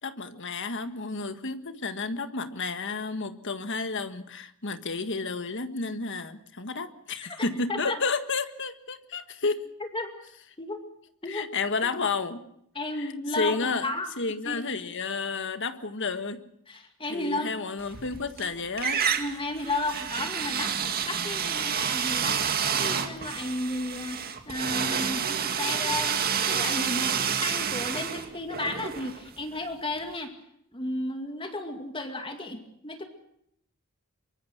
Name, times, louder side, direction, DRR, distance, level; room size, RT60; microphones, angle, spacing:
voice 1, 0.0-9.6 11.2-12.4 12.9-16.4 17.1-19.1, left 4 dB, 60° left, 1.7 m, -31 dB
voice 2, 7.2-8.0 9.9-10.1 10.6-10.8 11.2-11.5 11.8-11.9 12.7-14.1 14.4-14.6 16.7-17.6 19.2-22.4 22.8-30.3 30.7-33.0, left 2 dB, 25° left, 2.3 m, -33 dB
sound 1, 17.9-18.5 18.8-29.7, right 7 dB, 45° right, 2.2 m, -29 dB
24.5 x 23.5 x 6.0 m
head